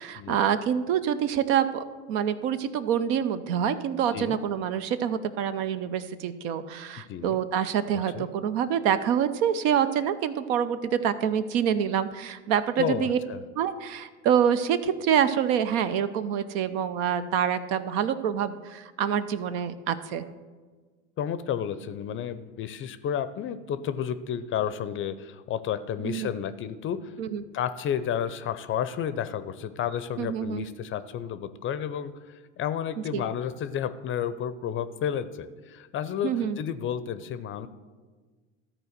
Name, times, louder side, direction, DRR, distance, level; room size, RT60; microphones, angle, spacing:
voice 1, 0.0-13.2 13.6-20.2 26.0-26.3 27.2-27.4 30.2-30.7 33.1-33.2 36.2-36.6, right 8 dB, 60° right, 12 dB, 0.7 m, -26 dB
voice 2, 7.9-8.3 12.8-13.4 21.2-27.1 27.5-32.1 32.6-37.7, left 9 dB, 35° left, 13 dB, 0.5 m, -31 dB
13.0 x 4.4 x 6.6 m, 1.4 s
hypercardioid pair, 95°, 36 cm